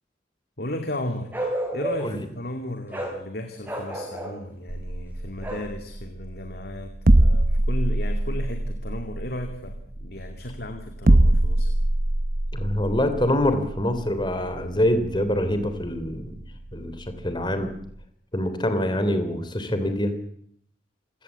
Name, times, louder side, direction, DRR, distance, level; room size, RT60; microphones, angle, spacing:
voice 1, 0.6-1.3 1.7-11.7, left 1 dB, 60° left, 5 dB, 2.5 m, -35 dB
Bark, 1.3-2.2 2.9-3.2 3.6-4.4 5.4-5.7, right 1 dB, 10° right, 7.1 m, -30 dB
sound 1, 4.7-18.0, right 1 dB, 50° right, 1.0 m, -24 dB
voice 2, 12.5-16.3 16.7-17.7 18.3-20.1, left 1 dB, 25° left, 9 dB, 3.4 m, -25 dB
27.5 x 17.5 x 8.4 m, 0.67 s
head